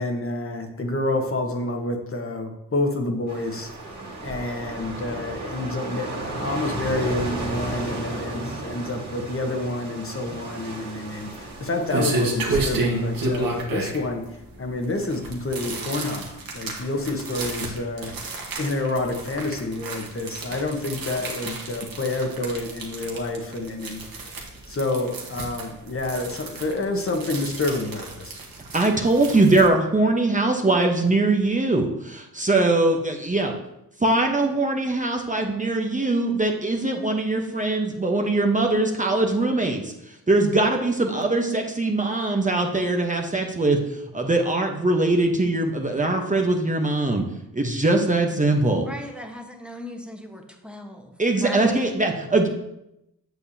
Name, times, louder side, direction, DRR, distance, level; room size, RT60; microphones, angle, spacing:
voice 1, 0.0-4.0 4.2-28.4, left 2 dB, 35° left, 3 dB, 1.2 m, -28 dB
sound 1, 3.3-13.6, right 2 dB, 50° right, 2.4 m, -34 dB
sound 2, 11.1-29.7, right 2 dB, 70° right, 1.6 m, -31 dB
voice 2, 28.7-33.6 34.0-39.9 40.3-43.8 44.1-47.2 47.5-48.9 51.2-52.5, right 2 dB, 20° right, 2 dB, 1.0 m, -21 dB
voice 3, 48.7-51.9, left 1 dB, 5° right, 2 dB, 1.2 m, -37 dB
8.0 x 6.6 x 2.8 m, 0.84 s
cardioid pair, 60°, 36 cm